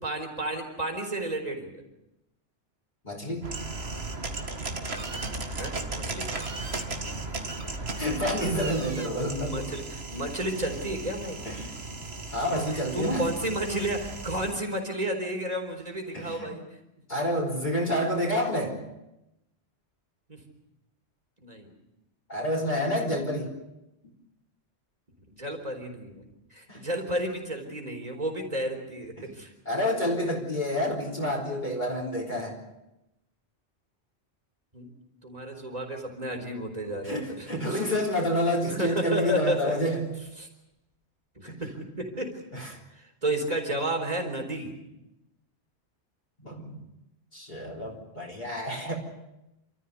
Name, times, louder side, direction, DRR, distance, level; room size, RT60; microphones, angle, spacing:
voice 1, 0.0-1.8 4.9-5.2 5.5-6.3 9.0-11.7 12.5-16.6 20.3-20.4 21.4-21.7 25.3-26.2 26.5-29.5 34.7-34.9 35.2-37.8 38.6-39.7 40.4-40.5 41.4-42.4 43.0-44.8, right 1 dB, 35° right, 3 dB, 4.2 m, -32 dB
voice 2, 3.0-3.5 6.7-7.0 8.0-9.7 11.4-11.7 12.3-13.3 16.1-16.5 17.1-18.8 22.3-23.6 26.7-26.8 29.2-29.3 29.7-32.6 37.0-40.1 41.5-41.6 42.5-42.7 46.4-46.8 47.3-48.9, equal, 40° left, -1 dB, 3.9 m, -29 dB
sound 1, 3.4-14.6, right 2 dB, 65° right, 2.3 m, -36 dB
28.5 x 14.0 x 9.5 m, 0.91 s
omnidirectional pair, 1.2 m